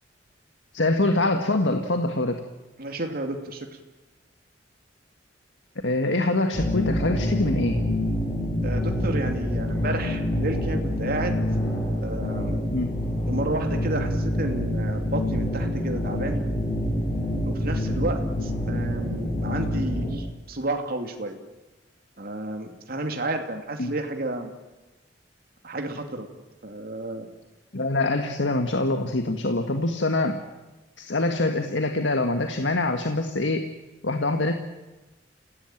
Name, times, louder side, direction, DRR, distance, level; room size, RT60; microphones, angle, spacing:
voice 1, 0.7-2.4 5.8-7.8 12.7-12.9 23.8-23.9 27.7-30.4 31.0-33.7 34.0-34.5, left 2 dB, 90° left, 6 dB, 1.7 m, -24 dB
voice 2, 2.8-3.7 8.6-11.4 12.0-12.7 13.3-16.4 17.4-21.4 22.2-24.5 25.6-26.3 26.6-27.3, right 2 dB, 55° right, 4 dB, 2.6 m, -31 dB
sound 1, 6.5-20.1, left 1 dB, 20° left, 7.1 m, -26 dB
29.0 x 17.0 x 9.1 m, 1.1 s
head